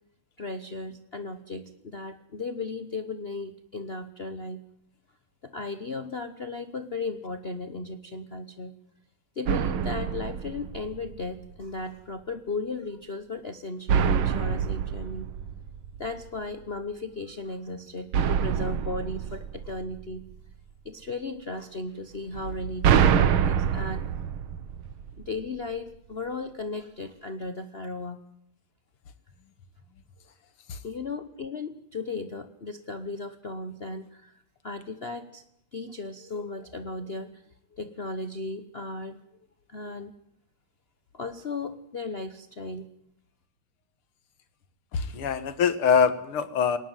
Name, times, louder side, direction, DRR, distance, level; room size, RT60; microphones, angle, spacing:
voice 1, 0.4-4.6 5.4-8.8 9.3-15.3 16.0-20.3 20.8-24.0 25.2-28.2 30.8-35.4 35.7-37.4 37.7-39.2 39.7-40.1 41.1-42.9, left 3 dB, 40° left, 9 dB, 1.0 m, -36 dB
sound 1, 9.5-11.3 13.9-16.3 18.1-20.4 22.4-25.4, right 8 dB, 75° right, 1.9 m, -26 dB
voice 2, 44.9-46.8, left 6 dB, 80° left, 13 dB, 2.4 m, -24 dB
21.5 x 19.0 x 9.1 m, 0.74 s
omnidirectional pair, 2.4 m